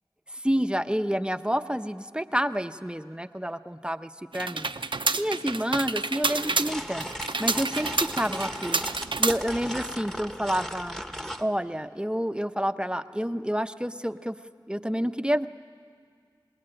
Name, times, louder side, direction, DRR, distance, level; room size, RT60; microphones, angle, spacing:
voice 1, 0.3-4.7 5.2-7.1 7.4-8.8 9.2-11.0 11.4-14.4 14.7-15.5, equal, 10° right, 9 dB, 0.8 m, -29 dB
sound 1, 4.3-9.8, right 3 dB, 80° right, 0.7 m, -29 dB
sound 2, 6.2-11.5, equal, 5° left, 1.3 m, -37 dB
27.0 x 20.5 x 9.0 m, 2.1 s
wide cardioid pair, 45°, 8 cm